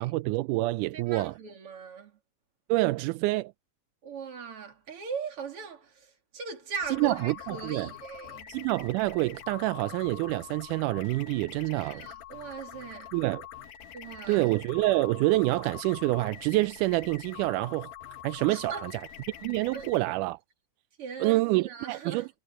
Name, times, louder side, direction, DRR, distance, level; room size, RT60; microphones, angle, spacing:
voice 1, 0.0-1.3 2.7-3.5 7.0-7.9 8.5-12.1 13.1-13.4 14.3-17.9 18.2-18.7 19.4-20.4 21.2-22.3, right 20 dB, 85° right, 1.8 m, -27 dB
voice 2, 0.9-2.2 4.0-8.5 11.8-13.1 13.9-14.5 18.5-18.8 19.7-19.9 21.0-22.3, right 6 dB, 40° right, 3.3 m, -39 dB
sound 1, 6.8-20.0, left 10 dB, 85° left, 3.2 m, -45 dB
omnidirectional pair, 4.1 m